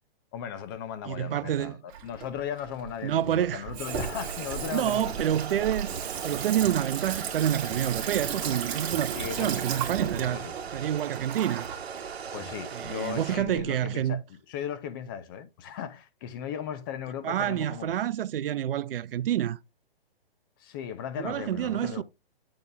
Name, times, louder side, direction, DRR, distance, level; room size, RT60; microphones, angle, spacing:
voice 1, 0.3-5.1 9.1-9.7 10.2-10.5 12.3-14.2 14.5-17.9 20.6-22.0, left 8 dB, 20° left, 0.5 m, -37 dB
voice 2, 1.1-1.8 3.0-3.6 4.7-5.9 6.2-11.7 12.7-14.2 17.2-19.6 21.2-22.0, right 11 dB, 65° right, 0.5 m, -28 dB
Water tap faucet / Sink (filling or washing), 1.9-13.6, right 7 dB, 30° right, 1.9 m, -36 dB
sound 1, 3.9-13.4, right 6 dB, 90° right, 1.1 m, -39 dB
8.6 x 4.2 x 3.3 m
hypercardioid pair, 145°, 31 cm